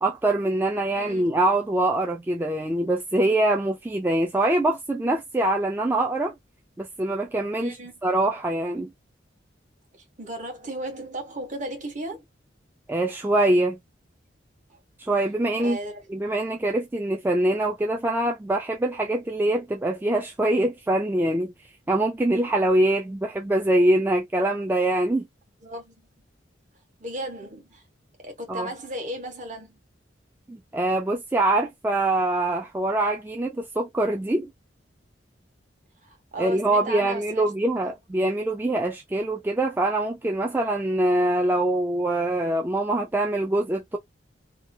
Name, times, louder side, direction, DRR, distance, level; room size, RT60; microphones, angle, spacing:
voice 1, 0.0-6.3 6.8-8.9 12.9-13.8 15.0-15.8 16.1-21.5 21.9-25.3 28.5-28.7 30.5-34.5 36.4-44.0, right 1 dB, 10° right, 0.3 m, -24 dB
voice 2, 7.6-8.0 10.2-12.2 14.7-14.8 15.6-16.1 25.6-25.9 27.0-27.8 28.2-29.8 36.0-37.5, right 1 dB, 40° right, 1.1 m, -35 dB
2.9 x 2.3 x 2.6 m
head